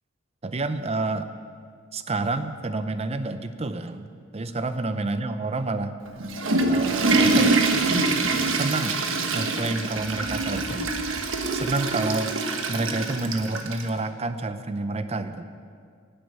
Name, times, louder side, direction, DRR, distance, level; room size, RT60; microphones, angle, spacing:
voice 1, 0.4-1.3 1.9-4.1 4.3-6.0 6.7-7.7 8.5-9.0 9.3-10.9 11.5-12.3 12.7-15.4, right 2 dB, 30° right, 10 dB, 0.6 m, -29 dB
Water / Toilet flush, 6.1-13.9, right 3 dB, 85° right, 1.2 m, -24 dB
11.0 x 7.9 x 8.9 m, 2.1 s
head